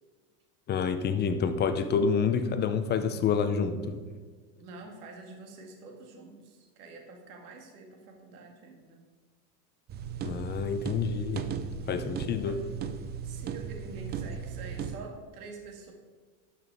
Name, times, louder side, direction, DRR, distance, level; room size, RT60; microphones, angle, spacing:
voice 1, 0.7-4.0 10.2-11.5 11.9-12.6, left 6 dB, 25° left, 10 dB, 0.6 m, -28 dB
voice 2, 4.5-9.0 12.4-12.6 13.2-15.9, right 3 dB, 80° right, 2 dB, 2.2 m, -46 dB
sound 1, 9.9-15.0, right 7 dB, 25° right, 0.4 m, -36 dB
12.0 x 5.9 x 4.8 m, 1.4 s
supercardioid pair, 140°, 44 cm